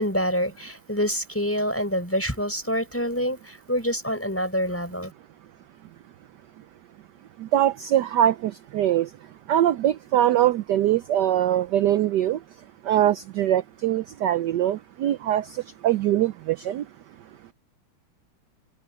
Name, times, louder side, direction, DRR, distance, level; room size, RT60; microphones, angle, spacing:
voice 1, 0.0-5.1, equal, 5° left, 4.3 m, -26 dB
voice 2, 7.4-9.1 9.5-12.4 12.9-15.5 15.8-16.8, right 12 dB, 75° right, 1.0 m, -22 dB
open air
omnidirectional pair, 2.4 m